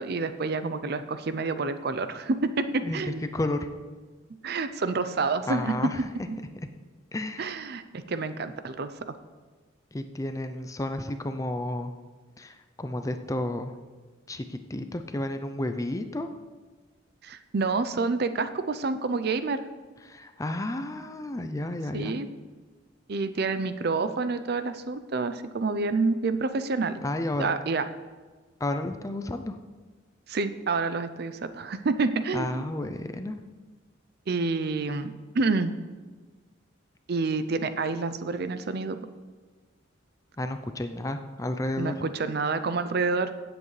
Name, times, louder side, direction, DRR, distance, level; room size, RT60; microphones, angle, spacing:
voice 1, 0.0-3.2 4.4-5.7 6.3-6.4 7.4-9.2 17.2-19.6 21.9-22.3 23.1-27.0 27.4-27.8 30.3-32.6 34.3-35.7 37.1-39.1 41.8-43.3, right 3 dB, 55° right, 11 dB, 0.5 m, -28 dB
voice 2, 2.8-3.7 5.5-6.1 7.1-7.6 9.9-11.9 12.4-13.7 14.3-16.3 20.1-22.1 27.0-27.5 28.6-29.6 32.3-33.4 40.4-41.9, left 1 dB, 15° left, 8 dB, 0.5 m, -32 dB
16.5 x 7.9 x 3.3 m, 1.4 s
head